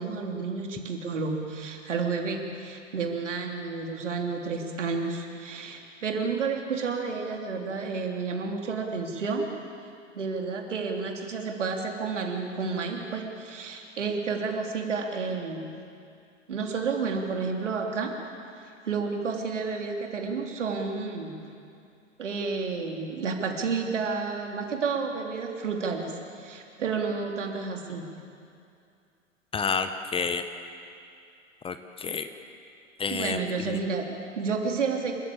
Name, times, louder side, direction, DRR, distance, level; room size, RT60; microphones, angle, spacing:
voice 1, 0.0-9.5 10.1-15.7 16.5-18.1 18.8-21.3 22.2-28.1 33.1-35.1, right 4 dB, 70° right, 2 dB, 3.4 m, -31 dB
voice 2, 29.5-30.4 31.6-32.3 33.0-33.8, left 5 dB, 15° left, 9 dB, 0.9 m, -30 dB
28.0 x 14.5 x 8.7 m, 2.5 s
figure-of-eight pair, 100°, 38 cm